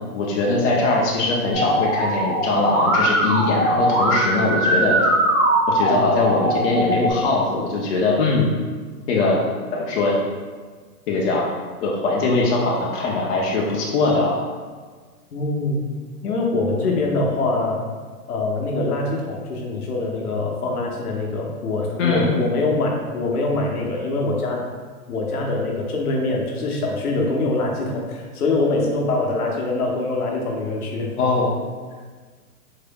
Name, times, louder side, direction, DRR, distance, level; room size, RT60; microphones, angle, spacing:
voice 1, 0.1-5.0 5.7-8.6 9.1-9.4 9.7-10.1 11.1-11.4 11.8-14.4 22.0-22.3 31.2-31.5, left 3 dB, 50° left, -2 dB, 0.6 m, -21 dB
Musical instrument, 1.5-7.1, right 1 dB, 5° right, 0.3 m, -20 dB
voice 2, 15.3-15.9 16.2-17.8 18.3-24.6 25.1-31.1, left 2 dB, 75° left, -1 dB, 0.9 m, -24 dB
3.7 x 3.2 x 2.2 m, 1.5 s
hypercardioid pair, 125°, 46 cm